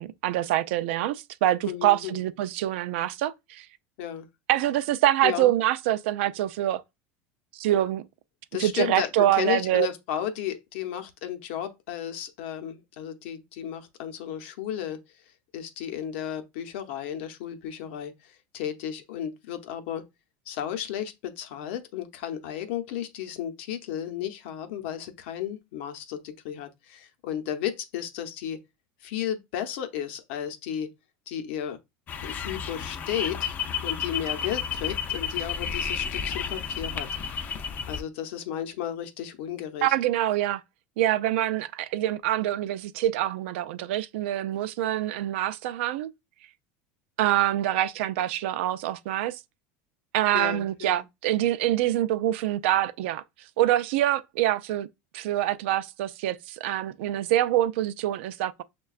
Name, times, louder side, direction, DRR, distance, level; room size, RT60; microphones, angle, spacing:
voice 1, 0.0-3.7 4.5-6.8 7.5-8.0 8.6-9.9 39.8-40.6 41.0-46.1 47.2-49.4 50.1-53.2 53.6-54.9 55.1-58.6, right 13 dB, 75° right, 0.3 m, -25 dB
voice 2, 1.7-2.3 4.0-4.3 5.2-5.5 8.5-15.0 15.5-20.1 20.5-28.6 29.0-30.9 31.3-31.8 32.2-37.1 37.9-39.9 50.3-51.0, left 10 dB, 70° left, 0.7 m, -33 dB
sound 1, 32.1-38.0, left 7 dB, 25° left, 0.4 m, -31 dB
6.4 x 2.2 x 2.3 m
supercardioid pair, 155°, 6 cm